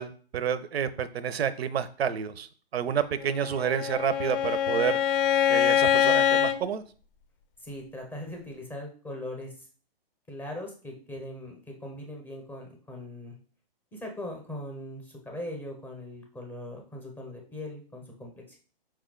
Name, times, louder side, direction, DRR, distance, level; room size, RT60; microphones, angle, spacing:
voice 1, 0.0-5.0 5.5-6.8, right 8 dB, 85° right, 15 dB, 0.5 m, -29 dB
Bowed string instrument, 3.4-6.6, left 9 dB, 60° left, 0.5 m, -24 dB
voice 2, 7.6-9.7 10.3-13.4 13.9-18.6, left 1 dB, 5° left, 0 dB, 0.6 m, -40 dB
4.7 x 2.2 x 3.6 m, 0.40 s
hypercardioid pair, 140°, 30 cm